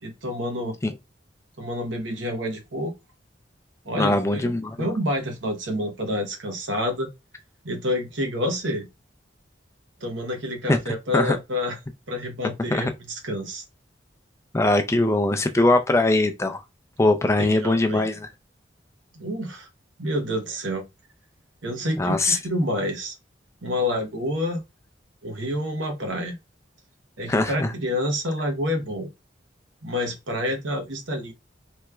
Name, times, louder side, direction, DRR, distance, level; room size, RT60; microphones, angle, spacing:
voice 1, 0.0-0.8 1.6-2.9 3.9-4.5 4.8-7.1 7.6-8.9 10.0-11.8 12.1-13.6 17.4-18.0 19.1-19.7 20.0-20.8 21.6-23.2 23.6-24.6 25.2-26.4 27.2-29.1 29.8-31.3, left 1 dB, 90° right, 0.9 m, -28 dB
voice 2, 4.0-4.8 10.7-10.8 11.1-11.4 12.7-12.9 14.5-16.6 17.0-18.3 22.0-22.4 27.3-27.7, left 2 dB, 15° left, 0.3 m, -21 dB
3.4 x 3.0 x 2.3 m
head